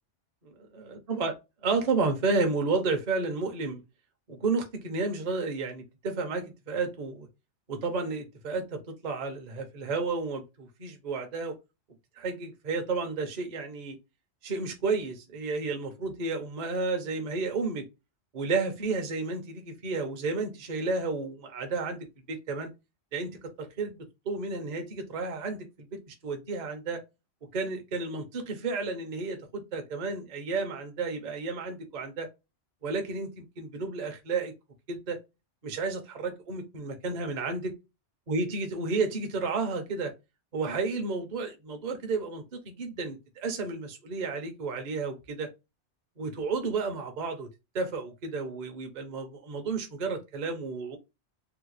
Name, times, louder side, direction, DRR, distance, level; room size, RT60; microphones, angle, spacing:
voice 1, 0.7-1.4 1.6-3.8 4.3-7.3 7.7-11.6 12.2-14.0 14.4-17.8 18.3-22.7 23.1-24.0 24.3-27.0 27.5-32.3 32.8-34.5 34.9-35.2 35.6-37.7 38.3-40.1 40.5-45.5 46.2-47.5 47.7-51.0, right 4 dB, 45° right, 0.7 m, -32 dB
3.5 x 2.1 x 3.0 m
omnidirectional pair, 1.2 m